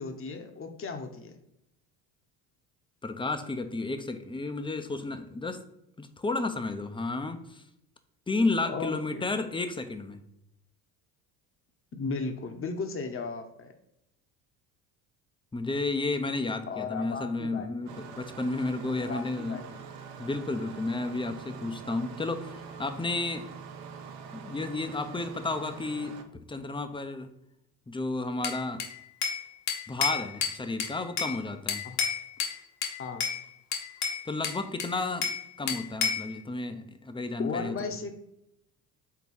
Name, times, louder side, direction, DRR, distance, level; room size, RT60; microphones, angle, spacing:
voice 1, 0.0-1.4 8.7-9.2 11.9-13.7 16.7-17.8 19.1-19.8 31.8-32.0 33.0-33.3 37.4-38.1, left 4 dB, 25° left, 5 dB, 1.0 m, -36 dB
voice 2, 3.0-5.6 6.0-7.6 8.3-10.2 15.5-19.6 20.2-23.5 24.3-26.2 26.5-27.3 27.9-28.8 29.9-31.8 34.3-35.3 35.6-37.8, left 3 dB, 10° left, 8 dB, 0.6 m, -32 dB
Engine starting, 17.9-26.2, right 6 dB, 85° right, 0.9 m, -44 dB
Bell / Glass, 28.4-29.4 29.7-31.4 31.7-32.6 32.8-33.4 33.7-35.4 35.7-36.3, left 6 dB, 60° left, 1.4 m, -30 dB
4.7 x 3.9 x 5.4 m, 0.80 s
hypercardioid pair, 70°, 47 cm